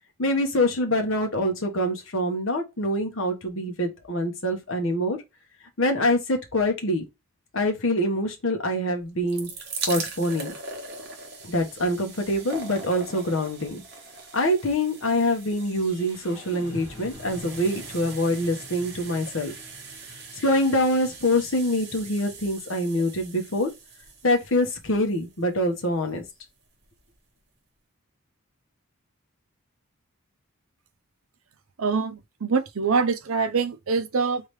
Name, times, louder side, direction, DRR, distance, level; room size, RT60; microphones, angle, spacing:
voice 1, 0.2-5.2 5.8-7.0 7.5-9.5 9.9-10.5 11.4-13.8 14.3-19.5 20.4-23.7 24.2-26.2, left 1 dB, 65° left, 1.2 m, -25 dB
sound 1, 9.0-26.1 26.8-26.9 27.1-27.2, right 4 dB, 50° right, 1.0 m, -41 dB
sound 2, 14.4-24.4, left 1 dB, 20° left, 1.9 m, -47 dB
voice 2, 31.8-34.4, right 5 dB, 75° right, 0.6 m, -24 dB
3.6 x 3.3 x 3.1 m
head